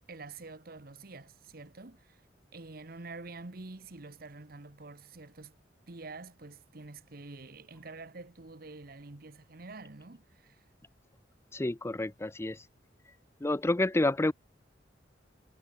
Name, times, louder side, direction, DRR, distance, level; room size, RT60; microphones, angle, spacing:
voice 1, 0.1-2.2 2.5-5.5 5.9-10.7, right 3 dB, 55° right, 1.3 m, -47 dB
voice 2, 11.5-12.6 13.4-14.3, left 2 dB, 15° left, 0.5 m, -29 dB
head